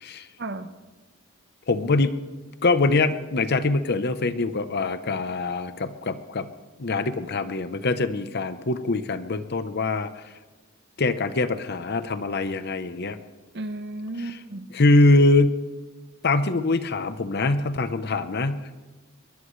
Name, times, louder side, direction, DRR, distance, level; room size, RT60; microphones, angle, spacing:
voice 1, 0.4-0.7 13.5-14.7, right 2 dB, 55° right, 10 dB, 1.0 m, -33 dB
voice 2, 1.7-2.2 2.6-6.5 6.8-10.1 11.0-13.2 14.7-15.6 16.2-18.9, left 2 dB, 50° left, 11 dB, 0.9 m, -23 dB
21.0 x 21.0 x 3.2 m, 1.3 s
head